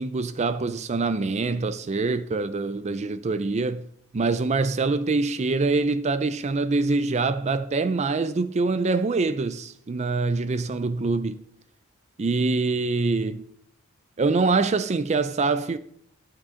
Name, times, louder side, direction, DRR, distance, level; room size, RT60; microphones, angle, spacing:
voice 1, 0.0-3.8 4.1-11.4 12.2-13.4 14.2-15.8, right 3 dB, 30° right, 0.4 m, -24 dB
12.5 x 8.9 x 3.7 m
head